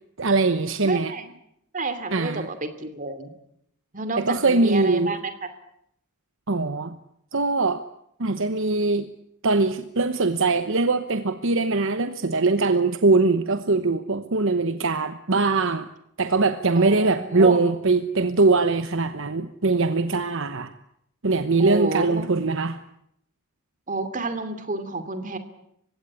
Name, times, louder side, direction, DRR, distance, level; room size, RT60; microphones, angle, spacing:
voice 1, 0.2-1.1 2.1-2.5 4.2-5.2 6.5-7.0 7.3-7.8 8.2-9.1 9.4-15.9 16.2-20.7 21.2-22.8, right 3 dB, 60° right, 10 dB, 1.0 m, -22 dB
voice 2, 0.8-1.3 1.7-3.3 3.9-5.5 16.7-17.6 21.6-22.3 23.9-25.4, right 2 dB, 35° right, 10 dB, 2.8 m, -30 dB
29.5 x 16.5 x 9.8 m, 0.75 s
head